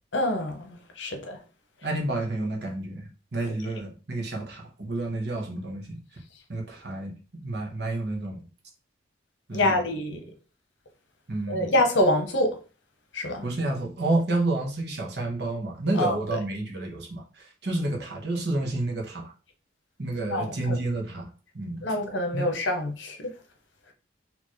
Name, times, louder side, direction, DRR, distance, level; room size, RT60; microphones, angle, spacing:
voice 1, 0.1-1.4 9.5-10.2 11.5-12.6 13.1-13.4 16.0-16.4 20.3-20.8 21.8-23.3, left 1 dB, 75° left, 1.0 m, -26 dB
voice 2, 1.8-6.0 6.5-7.1 7.4-8.4 9.5-9.8 11.3-11.7 13.4-19.3 20.0-21.3 21.5-21.8 22.3-22.5, right 2 dB, 60° right, 1.2 m, -30 dB
4.5 x 2.9 x 3.2 m
head